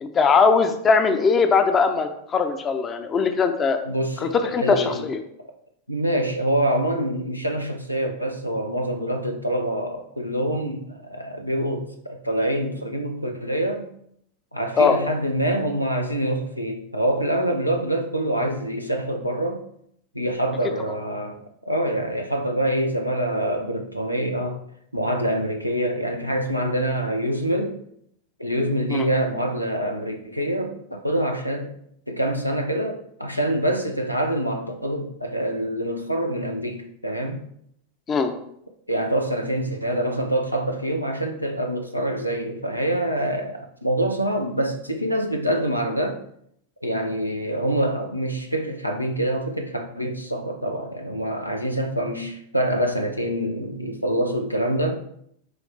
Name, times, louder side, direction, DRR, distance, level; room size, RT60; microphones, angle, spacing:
voice 1, 0.0-3.8 4.2-5.2 14.8-15.0 28.9-29.1 38.1-38.3, left 5 dB, 25° left, 7 dB, 0.6 m, -20 dB
voice 2, 3.9-5.1 5.9-13.9 14.5-19.6 20.1-24.6 24.9-27.8 28.4-31.7 32.1-37.4 38.9-46.2 46.8-55.0, right 1 dB, 90° left, 4 dB, 0.6 m, -25 dB
9.3 x 3.2 x 3.2 m, 0.71 s
figure-of-eight pair, 90°, 0 cm